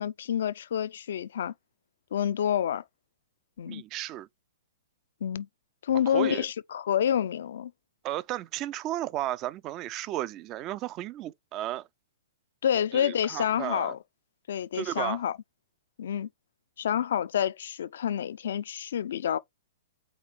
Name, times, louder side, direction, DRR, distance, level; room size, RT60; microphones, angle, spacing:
voice 1, 0.0-1.5 2.1-2.8 3.6-3.8 5.2-5.5 5.8-7.7 12.6-14.0 14.5-15.4 16.0-16.3 16.8-19.4, left 9 dB, 60° left, 0.4 m, -28 dB
voice 2, 3.7-4.3 6.1-6.5 8.0-11.9 12.9-13.9 14.7-15.2, right 14 dB, 30° right, 0.3 m, -34 dB
4.3 x 3.3 x 3.7 m
figure-of-eight pair, 110°, 0 cm